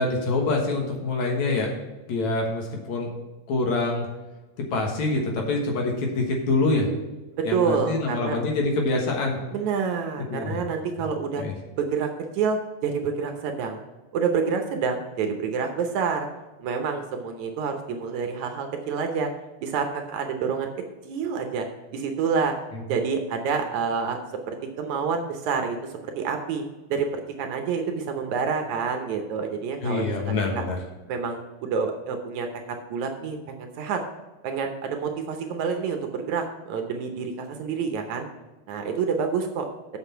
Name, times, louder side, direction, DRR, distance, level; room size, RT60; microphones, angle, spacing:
voice 1, 0.0-1.7 2.1-3.1 3.5-4.1 4.7-6.9 7.4-9.4 10.3-10.6 11.3-11.5 22.7-22.8 29.8-30.8, left 2 dB, 65° left, 1 dB, 2.6 m, -25 dB
voice 2, 7.3-8.4 9.5-11.4 11.8-12.1 12.3-13.8 14.1-16.3 16.6-19.3 19.6-20.7 21.1-21.7 21.9-22.5 22.9-24.2 24.5-26.6 26.9-30.6 31.1-32.5 32.9-34.0 34.4-38.3 38.7-39.7, right 5 dB, 70° right, 4 dB, 2.0 m, -28 dB
8.0 x 6.3 x 5.6 m, 1.2 s
omnidirectional pair, 3.8 m